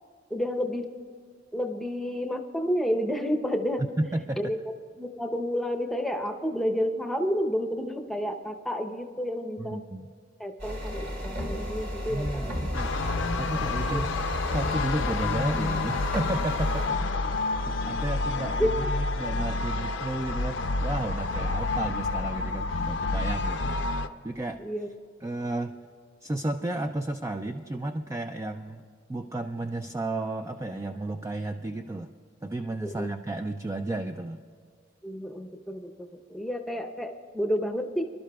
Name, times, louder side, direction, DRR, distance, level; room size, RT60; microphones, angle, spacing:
voice 1, 0.3-0.9 1.5-3.8 4.4-4.6 5.0-9.8 10.4-12.7 13.9-14.0 18.6-18.9 24.6-24.9 32.8-33.1 35.0-38.0, equal, ahead, 5 dB, 0.8 m, -30 dB
voice 2, 4.0-4.5 9.6-10.0 12.1-13.0 13.4-14.1 14.5-17.1 17.6-23.8 24.2-24.6 25.2-25.7 26.2-28.8 29.1-32.1 32.4-34.4, right 2 dB, 15° right, 6 dB, 0.3 m, -33 dB
sound 1, 10.6-16.9, equal, 65° right, 3.4 m, -33 dB
sound 2, 12.7-24.1, left 3 dB, 70° left, 0.6 m, -29 dB
26.5 x 12.0 x 2.3 m, 2.1 s
head